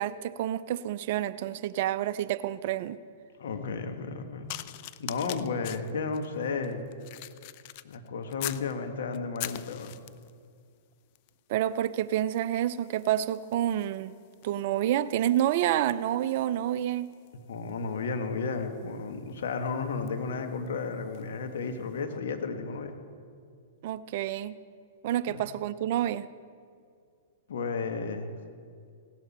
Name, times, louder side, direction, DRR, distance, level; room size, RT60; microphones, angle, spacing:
voice 1, 0.0-3.0 11.5-14.1 14.4-17.1 23.8-24.6 25.0-26.3, right 12 dB, 55° right, 15 dB, 0.5 m, -28 dB
voice 2, 3.4-4.5 5.0-6.9 7.8-10.0 17.5-22.9 25.3-25.4 27.5-28.4, left 4 dB, 70° left, 6 dB, 1.5 m, -33 dB
sound 1, 4.5-8.7 9.1-10.4 11.2-11.4 11.7-21.4 22.1-22.2, left 16 dB, 50° left, 0.4 m, -45 dB
17.0 x 12.0 x 4.3 m, 2.2 s
hypercardioid pair, 120°, 0 cm